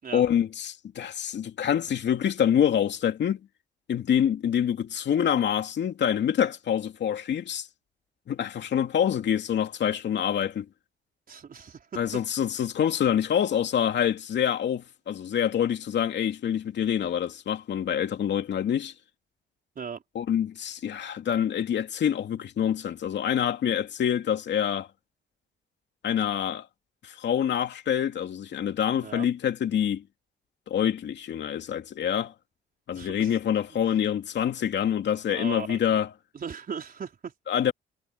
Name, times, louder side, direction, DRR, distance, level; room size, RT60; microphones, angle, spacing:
voice 1, 0.1-3.4 3.9-7.7 8.3-10.7 12.0-18.9 20.1-24.9 26.0-26.7 27.0-30.0 30.7-32.3 32.9-36.1 37.5-37.7, left 9 dB, 65° left, 2.7 m, -26 dB
voice 2, 11.3-12.0 19.7-20.0 29.0-29.3 32.9-33.4 33.8-34.0 35.3-36.0 36.3-37.3, right 6 dB, 45° right, 4.6 m, -38 dB
cardioid pair, 90°, 20 cm